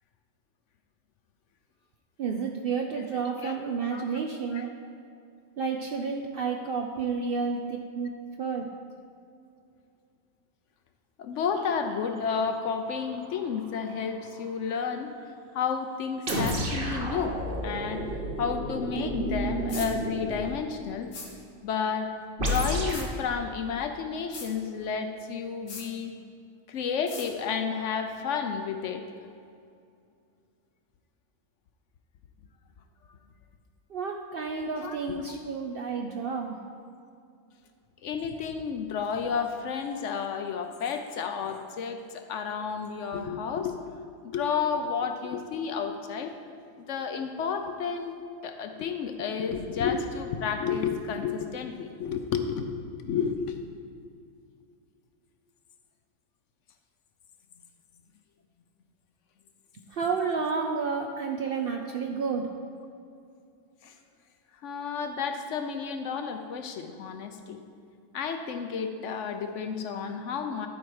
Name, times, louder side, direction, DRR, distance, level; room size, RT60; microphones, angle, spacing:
voice 1, 2.2-4.7 5.6-8.1 8.4-8.6 33.9-36.6 59.9-62.5, right 5 dB, 60° right, 2 dB, 0.6 m, -30 dB
voice 2, 2.9-3.6 3.9-4.0 4.5-4.7 7.1-7.3 8.0-8.2 11.2-15.1 15.5-17.4 17.6-18.0 18.4-21.1 21.6-22.1 22.4-26.1 26.7-29.0 34.8-35.4 38.0-43.9 44.2-46.3 46.8-48.1 48.4-53.6 63.8-63.9 64.6-67.6 68.1-70.7, left 6 dB, 65° left, 6 dB, 0.9 m, -31 dB
sound 1, 11.5-14.9 17.6-18.1 18.4-18.5 19.0-20.0, right 4 dB, 80° right, 1.2 m, -39 dB
sound 2, 16.3-20.6 22.4-23.1, equal, 40° right, 1.2 m, -31 dB
sound 3, 19.7-19.9 21.1-21.3 22.9-23.1 24.3-24.5 25.7-25.9 27.1-27.3, left 4 dB, 85° left, 1.7 m, -39 dB
11.5 x 4.7 x 4.7 m, 2.5 s
omnidirectional pair, 1.5 m